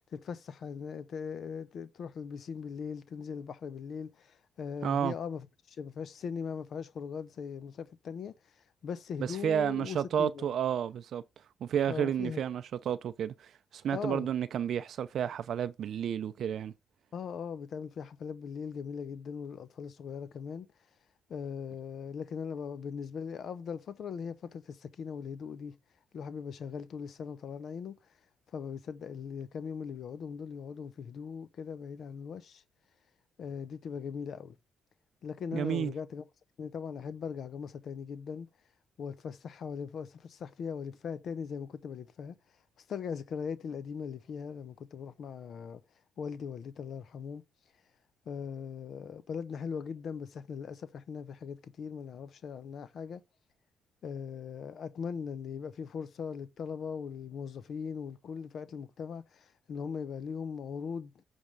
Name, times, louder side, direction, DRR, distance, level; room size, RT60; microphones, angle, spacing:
voice 1, 0.0-8.3 8.8-10.5 11.9-12.4 13.9-14.3 17.1-20.7 21.3-25.8 26.1-28.0 28.5-32.6 33.4-34.6 35.2-36.2 36.6-38.5 39.0-42.4 42.9-45.8 46.2-47.4 48.3-53.2 54.0-61.1, left 6 dB, 60° left, 0.7 m, -39 dB
voice 2, 4.8-5.1 9.2-11.2 11.6-16.7 35.5-35.9, right 9 dB, 65° right, 0.5 m, -31 dB
8.8 x 3.5 x 5.2 m
cardioid pair, 90°, 0 cm